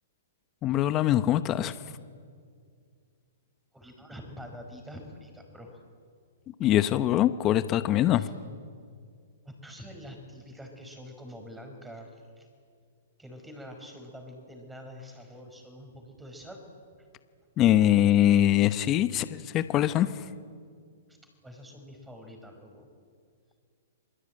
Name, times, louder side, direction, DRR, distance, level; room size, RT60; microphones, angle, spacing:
voice 1, 0.6-1.7 6.6-8.3 17.6-20.1, left 12 dB, 25° left, 12 dB, 1.0 m, -23 dB
voice 2, 3.7-5.8 8.1-8.3 9.4-12.5 13.2-16.6 21.4-22.9, equal, 5° right, 4 dB, 5.1 m, -46 dB
28.0 x 20.5 x 8.9 m, 2.2 s
hypercardioid pair, 140°, 0 cm